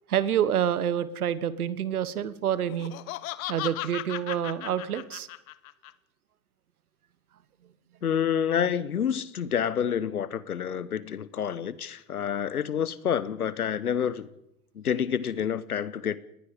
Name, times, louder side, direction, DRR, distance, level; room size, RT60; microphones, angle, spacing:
voice 1, 0.1-2.9 3.5-5.3, right 9 dB, 80° right, 1.5 m, -27 dB
Laughter, 2.7-5.9, left 15 dB, 65° left, 1.1 m, -36 dB
voice 2, 8.0-14.3 14.7-16.2, left 8 dB, 90° left, 1.1 m, -28 dB
29.0 x 19.5 x 5.1 m
hypercardioid pair, 85°, 43 cm